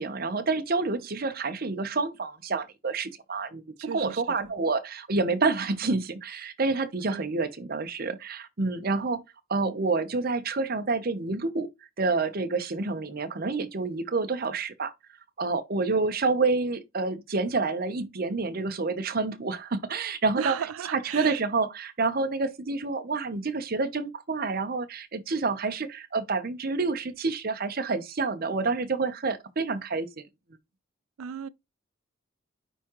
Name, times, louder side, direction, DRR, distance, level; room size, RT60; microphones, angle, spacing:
voice 1, 0.0-9.2 9.5-11.7 12.0-14.9 15.4-20.5 20.9-30.2, right 3 dB, 45° right, 0.8 m, -28 dB
voice 2, 3.8-4.5 7.1-7.3 20.4-21.4 31.2-31.5, right 8 dB, 90° right, 0.4 m, -35 dB
9.2 x 3.6 x 3.0 m
head